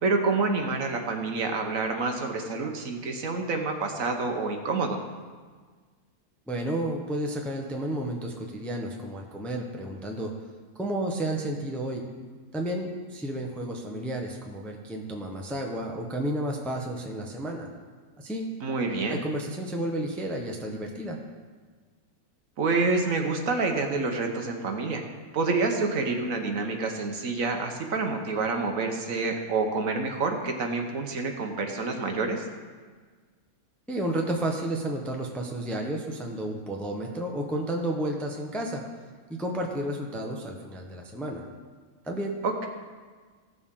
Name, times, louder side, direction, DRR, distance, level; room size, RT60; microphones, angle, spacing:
voice 1, 0.0-5.0 18.6-19.2 22.6-25.0 25.3-32.4 42.4-42.7, right 3 dB, 65° right, 3 dB, 1.3 m, -28 dB
voice 2, 6.5-10.3 10.7-12.1 12.5-17.7 18.2-18.5 19.1-21.2 33.9-38.8 39.3-41.4 42.0-42.3, right 1 dB, ahead, 1 dB, 0.7 m, -31 dB
15.5 x 6.8 x 3.7 m, 1.5 s
omnidirectional pair, 1.6 m